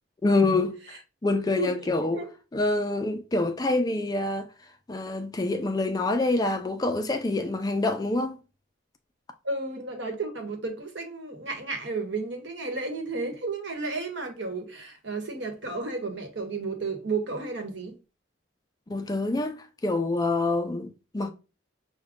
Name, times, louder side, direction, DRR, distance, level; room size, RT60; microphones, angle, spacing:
voice 1, 0.2-2.2 2.5-4.5 4.9-8.3 18.9-21.3, left 2 dB, 20° left, 0.3 m, -26 dB
voice 2, 1.6-1.9 2.1-2.3 9.4-18.0, right 3 dB, 65° right, 1.1 m, -32 dB
6.1 x 2.2 x 3.6 m
head